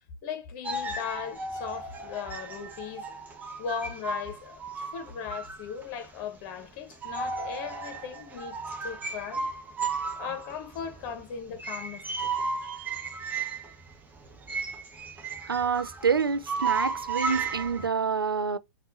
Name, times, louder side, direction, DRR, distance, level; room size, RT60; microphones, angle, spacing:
voice 1, 0.2-3.0 3.6-4.6 4.9-8.6 8.8-9.5 10.2-12.4, left 7 dB, 40° left, 1.1 m, -37 dB
sound 1, 0.6-6.2 6.6-6.7 6.9-17.9, right 4 dB, 15° right, 1.0 m, -34 dB
voice 2, 15.5-18.6, right 6 dB, 80° right, 0.4 m, -27 dB
4.2 x 2.6 x 4.0 m
figure-of-eight pair, 105°, 12 cm